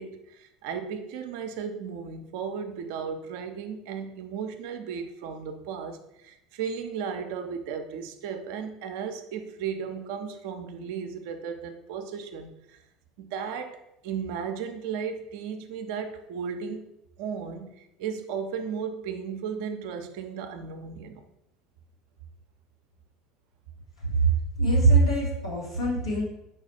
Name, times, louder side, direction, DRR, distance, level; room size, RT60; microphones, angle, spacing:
voice 1, 0.0-12.8 13.2-16.9 17.2-21.2, right 6 dB, 65° right, 7 dB, 0.5 m, -35 dB
voice 2, 24.6-26.2, right 2 dB, 90° left, -5 dB, 1.3 m, -22 dB
4.6 x 2.4 x 4.1 m, 0.86 s
hypercardioid pair, 70°, 3 cm